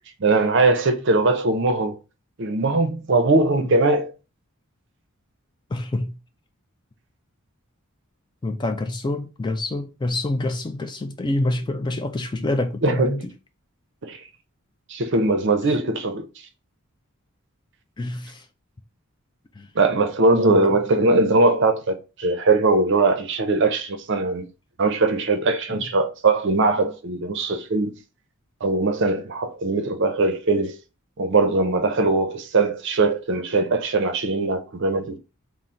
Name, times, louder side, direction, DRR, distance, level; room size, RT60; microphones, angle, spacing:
voice 1, 0.2-2.0 2.4-4.1 12.8-13.2 14.0-14.2 14.9-16.3 19.8-24.5 24.8-28.0 28.6-30.8 31.2-35.2, right 3 dB, 55° right, 0.6 m, -20 dB
voice 2, 5.7-6.1 8.4-13.3 15.7-15.8 18.0-18.5 19.5-19.7 20.3-20.6 25.7-25.9, left 2 dB, 20° left, 0.3 m, -27 dB
3.8 x 2.0 x 4.3 m
head